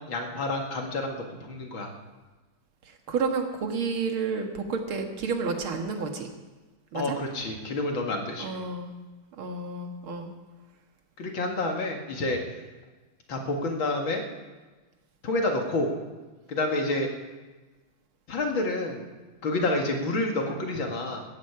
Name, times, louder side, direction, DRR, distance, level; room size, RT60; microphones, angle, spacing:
voice 1, 0.0-1.9 6.9-8.5 11.2-12.4 13.3-14.2 15.2-15.9 16.5-17.1 18.3-19.1 19.4-21.2, left 2 dB, 65° left, 2 dB, 2.7 m, -29 dB
voice 2, 2.9-6.3 6.9-7.2 8.4-8.9 9.4-10.3, right 4 dB, 70° right, 4 dB, 2.4 m, -30 dB
17.5 x 13.5 x 4.8 m, 1.2 s
omnidirectional pair, 2.4 m